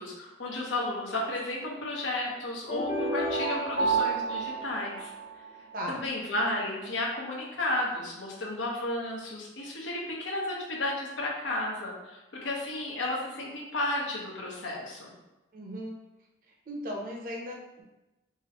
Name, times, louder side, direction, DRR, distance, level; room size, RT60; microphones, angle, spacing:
voice 1, 0.0-5.1 5.9-15.1, left 2 dB, 80° left, -2 dB, 0.9 m, -33 dB
sound 1, 2.7-5.7, right 3 dB, 40° left, 0.7 m, -30 dB
voice 2, 15.5-15.9 16.7-17.8, equal, 45° right, 0 dB, 0.6 m, -36 dB
3.0 x 2.5 x 4.1 m, 1.0 s
head